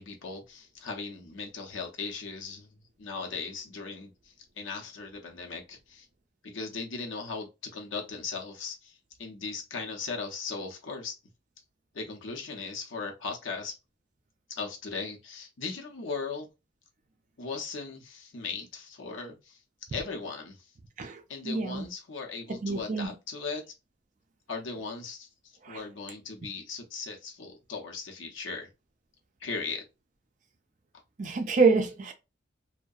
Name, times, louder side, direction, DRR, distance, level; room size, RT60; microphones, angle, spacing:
voice 1, 0.0-2.7 3.0-6.1 6.4-11.1 11.9-13.7 14.6-16.5 17.4-19.6 19.9-20.7 21.3-23.6 24.5-25.3 25.7-28.7 29.4-29.8, left 4 dB, 85° left, 0.7 m, -38 dB
voice 2, 21.4-21.9 22.6-23.1 25.7-25.8 31.2-32.1, right 4 dB, 40° right, 0.4 m, -26 dB
2.6 x 2.1 x 2.3 m
head